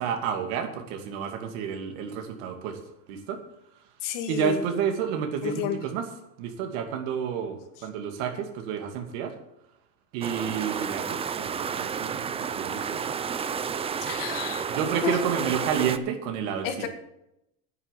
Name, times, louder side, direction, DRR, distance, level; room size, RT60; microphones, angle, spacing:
voice 1, 0.0-2.8 3.1-3.4 4.3-6.1 6.4-9.4 10.1-13.0 14.7-16.9, right 7 dB, 70° right, 5 dB, 2.5 m, -30 dB
voice 2, 4.0-4.6 5.4-5.8 14.0-14.7 15.0-15.2 16.6-16.9, left 9 dB, 55° left, 5 dB, 2.2 m, -31 dB
sound 1, 10.2-16.0, right 7 dB, 15° right, 0.5 m, -31 dB
9.7 x 8.7 x 7.6 m, 0.84 s
supercardioid pair, 140°, 38 cm